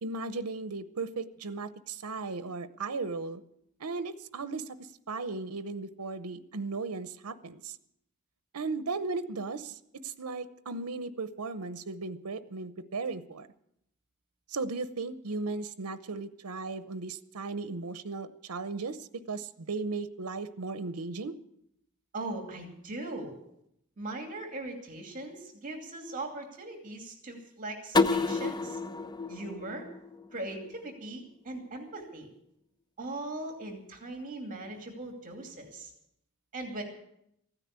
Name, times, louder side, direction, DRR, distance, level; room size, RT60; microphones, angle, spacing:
voice 1, 0.0-3.4 3.8-7.8 8.5-13.5 14.5-21.3, right 3 dB, 80° right, 13 dB, 0.8 m, -36 dB
voice 2, 22.1-23.4 24.0-28.8 29.3-29.9 30.3-32.3 33.0-35.9 36.5-36.8, right 2 dB, 35° right, 3 dB, 2.6 m, -39 dB
sound 1, 27.9-30.8, left 3 dB, 20° left, 0.6 m, -30 dB
15.5 x 9.9 x 8.1 m, 0.76 s
head